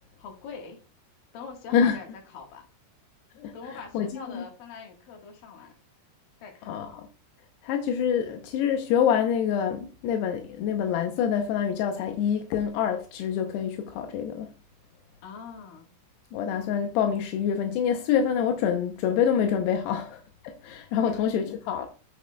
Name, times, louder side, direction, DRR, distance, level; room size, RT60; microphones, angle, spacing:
voice 1, 0.2-0.8 1.3-2.6 3.5-5.7 6.4-6.8 15.2-15.9 21.0-21.2, left 5 dB, 65° left, 3.1 m, -43 dB
voice 2, 6.7-7.1 7.6-14.5 16.3-21.9, left 8 dB, 85° left, 2.8 m, -26 dB
8.4 x 8.4 x 2.2 m
omnidirectional pair, 4.6 m